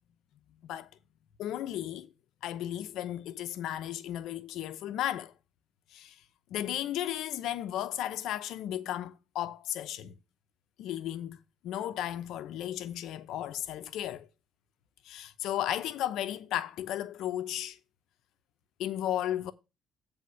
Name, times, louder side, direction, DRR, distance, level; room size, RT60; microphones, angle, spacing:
voice 1, 1.4-2.1 2.4-5.3 5.9-6.2 6.5-10.1 10.8-11.4 11.6-14.3 15.0-17.8 18.8-19.5, left 12 dB, 80° left, 0.6 m, -34 dB
9.3 x 3.5 x 6.9 m
cardioid pair, 90°, 0 cm